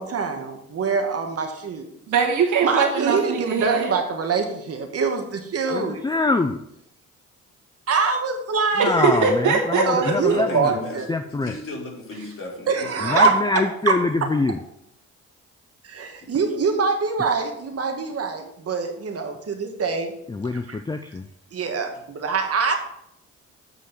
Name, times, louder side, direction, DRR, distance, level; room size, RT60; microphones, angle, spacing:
voice 1, 0.0-1.9 2.6-6.0 7.9-9.0 9.8-11.1 12.7-13.9 15.8-20.1 20.5-20.8 21.5-22.8, right 4 dB, 50° right, 4 dB, 1.8 m, -24 dB
voice 2, 2.1-3.9 8.8-10.2, right 5 dB, 75° right, 1 dB, 2.2 m, -21 dB
voice 3, 5.7-6.6 8.8-10.7 11.1-11.5 13.0-14.6 20.3-21.2, left 3 dB, 15° left, 8 dB, 0.5 m, -24 dB
voice 4, 10.0-13.2 16.2-16.3 21.9-22.0, left 3 dB, 45° left, -2 dB, 3.4 m, -36 dB
8.2 x 5.1 x 6.6 m, 0.75 s
cardioid pair, 90°, 30 cm